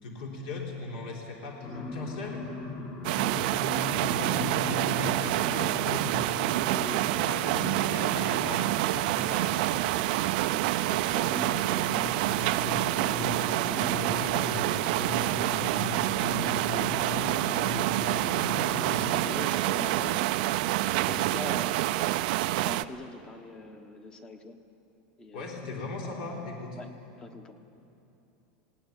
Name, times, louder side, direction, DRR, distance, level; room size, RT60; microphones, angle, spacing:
voice 1, 0.0-2.4 3.6-6.4 7.3-10.0 21.1-21.4 25.3-26.8, left 2 dB, 70° left, -1 dB, 3.6 m, -38 dB
sound 1, 1.6-19.3, left 4 dB, 35° left, 1.9 m, -39 dB
voice 2, 3.0-3.5 4.0-4.2 6.6-7.8 10.1-13.3 13.7-15.6 16.1-18.4 18.7-20.3 20.7-21.8 22.6-24.6 25.2-25.5 26.0-26.4 26.8-26.9 27.2-27.5, left 2 dB, 15° left, 8 dB, 1.2 m, -44 dB
sound 2, 3.0-22.8, right 17 dB, 60° right, 0.5 m, -27 dB
20.0 x 18.0 x 9.9 m, 2.9 s
supercardioid pair, 165°, 5 cm